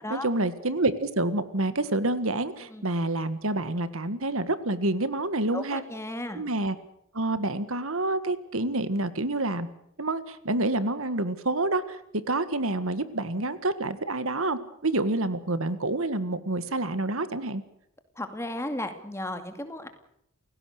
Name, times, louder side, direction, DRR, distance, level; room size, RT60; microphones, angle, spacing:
voice 1, 0.1-5.8 6.4-6.8 7.1-9.7 10.0-12.0 12.3-17.6, right 2 dB, 65° right, 13 dB, 1.7 m, -28 dB
voice 2, 5.5-6.4 18.2-19.9, left 1 dB, 10° left, 7 dB, 2.3 m, -34 dB
29.5 x 17.0 x 6.7 m, 0.76 s
head